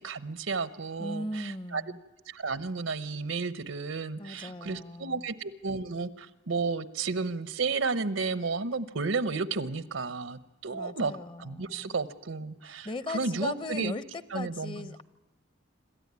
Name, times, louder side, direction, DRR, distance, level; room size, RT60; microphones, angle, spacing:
voice 1, 0.0-1.8 2.3-13.9 14.3-14.9, right 4 dB, 90° right, 14 dB, 0.9 m, -32 dB
voice 2, 1.0-2.0 4.2-5.3 10.7-12.0 12.8-15.0, left 2 dB, 25° left, 15 dB, 0.7 m, -38 dB
26.5 x 13.5 x 9.6 m, 1.1 s
head